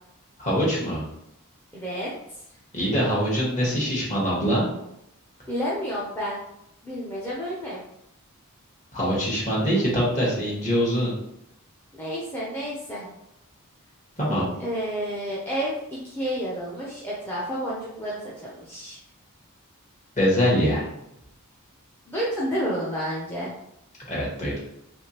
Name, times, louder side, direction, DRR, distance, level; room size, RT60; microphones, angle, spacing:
voice 1, 0.4-1.0 2.7-4.7 8.9-11.1 14.2-14.5 20.2-20.8 24.1-24.6, equal, 35° left, -5 dB, 1.4 m, -23 dB
voice 2, 1.7-2.1 5.5-6.4 6.8-7.8 11.9-13.1 14.6-19.0 22.1-23.5, equal, 10° left, -7 dB, 0.6 m, -30 dB
3.5 x 3.1 x 2.9 m, 0.81 s
head